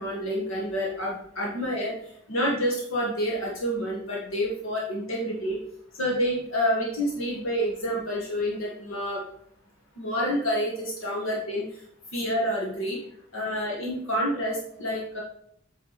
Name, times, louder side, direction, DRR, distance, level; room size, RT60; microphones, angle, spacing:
voice 1, 0.0-1.9 2.3-5.6 6.0-9.2 10.0-11.6 12.1-13.0 13.3-15.2, equal, 80° left, -3 dB, 1.8 m, -28 dB
8.2 x 5.2 x 4.2 m, 0.66 s
head